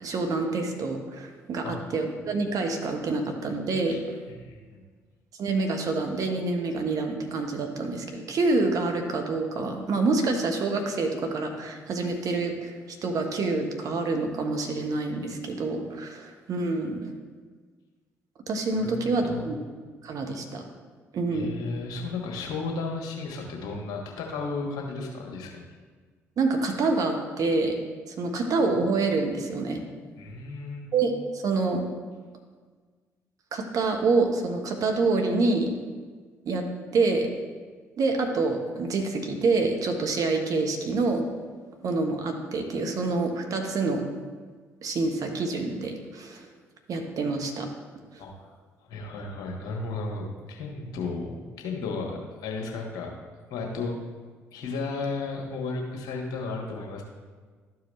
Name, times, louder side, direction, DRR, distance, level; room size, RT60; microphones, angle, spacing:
voice 1, 0.0-4.0 5.4-12.7 13.0-17.1 18.5-19.5 20.0-20.6 21.1-21.6 26.4-27.8 28.1-29.8 30.9-31.8 33.5-35.7 36.4-36.6 36.9-37.3 38.0-41.2 41.8-44.0 44.8-46.5 46.9-47.7, right 3 dB, 55° right, 4 dB, 1.1 m, -27 dB
voice 2, 4.3-4.8 18.8-19.0 19.2-19.5 21.3-25.6 30.2-30.8 48.2-48.5 48.9-53.1 53.5-54.0 54.5-57.0, left 3 dB, 65° left, 1 dB, 1.4 m, -34 dB
12.5 x 4.7 x 3.2 m, 1.5 s
hypercardioid pair, 50°, 7 cm